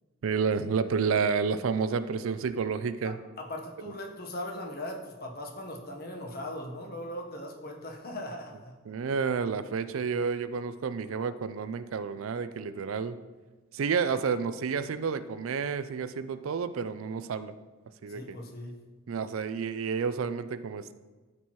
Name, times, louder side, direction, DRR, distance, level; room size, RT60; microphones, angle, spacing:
voice 1, 0.2-3.2 3.8-3.9 8.9-13.2 13.7-17.5 18.0-18.4 19.1-20.9, right 5 dB, 80° right, 12 dB, 0.4 m, -30 dB
voice 2, 3.0-8.7 18.1-18.8, left 1 dB, 50° left, 1 dB, 1.0 m, -39 dB
12.5 x 4.5 x 3.0 m, 1.3 s
head